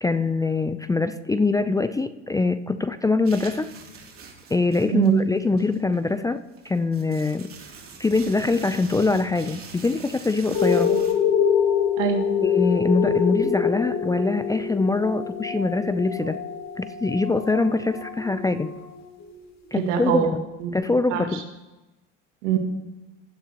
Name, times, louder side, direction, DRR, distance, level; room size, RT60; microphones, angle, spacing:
voice 1, 0.0-3.7 4.5-7.5 8.0-11.0 12.4-16.4 16.8-18.7 19.7-20.4 20.7-21.4, left 3 dB, 10° left, 12 dB, 0.4 m, -23 dB
sound 1, 3.2-11.1, right 5 dB, 40° right, 2.8 m, -44 dB
voice 2, 4.9-5.2 10.9-11.0 12.0-12.3 19.7-20.8 21.1-21.4 22.4-22.6, right 8 dB, 75° right, 3 dB, 2.1 m, -24 dB
sound 2, 10.5-19.4 20.1-20.2, left 7 dB, 45° left, 2.9 m, -25 dB
16.0 x 11.5 x 2.9 m, 1.0 s
hypercardioid pair, 85°, 36 cm